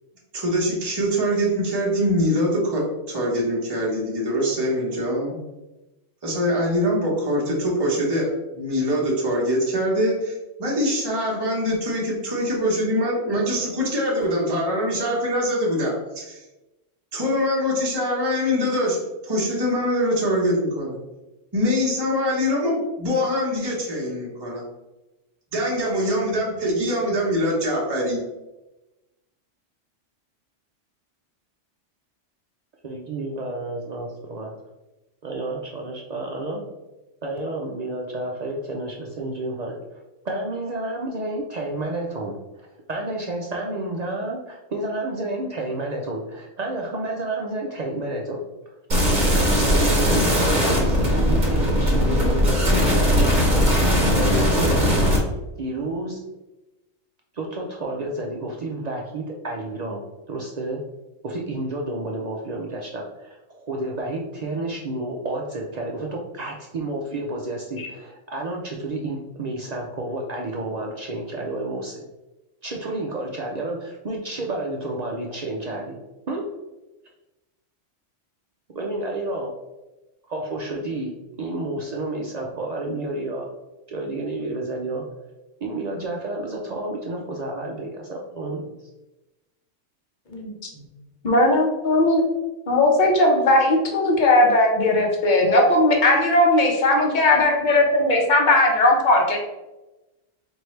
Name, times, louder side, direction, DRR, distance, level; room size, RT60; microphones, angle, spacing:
voice 1, 0.3-5.4 6.2-16.4 17.1-19.0 19.2-21.0 21.5-24.6 25.5-28.2, equal, 20° right, -5 dB, 0.9 m, -23 dB
voice 2, 32.8-34.5 35.2-36.6 37.2-39.8 40.2-42.4 42.9-48.4 48.7-48.8 49.3-53.2 54.1-54.9 55.6-56.2 57.3-60.0 60.3-60.8 61.2-72.0 72.6-76.0 76.3-76.4 78.7-79.5 80.3-81.1 81.4-83.5 83.9-85.0 85.6-88.7, right 2 dB, 70° right, -1 dB, 0.4 m, -30 dB
sound 1, 48.9-55.2, equal, 40° right, 1.2 m, -19 dB
voice 3, 91.2-92.2 92.7-99.4, left 1 dB, 45° left, 1 dB, 0.8 m, -18 dB
4.5 x 2.6 x 3.1 m, 1.0 s
omnidirectional pair, 1.3 m